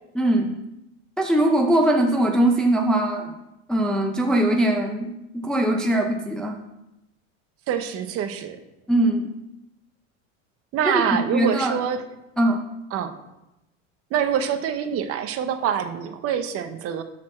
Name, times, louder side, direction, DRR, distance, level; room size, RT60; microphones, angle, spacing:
voice 1, 0.2-0.5 1.2-3.3 3.7-6.6 8.9-9.3 10.8-11.0 11.3-11.8 12.4-12.6, right 1 dB, ahead, 1 dB, 0.5 m, -21 dB
voice 2, 7.7-8.6 10.7-12.0 12.9-13.1 14.1-17.0, right 8 dB, 40° right, 9 dB, 0.8 m, -25 dB
12.5 x 4.2 x 4.3 m, 0.92 s
supercardioid pair, 125°, 38 cm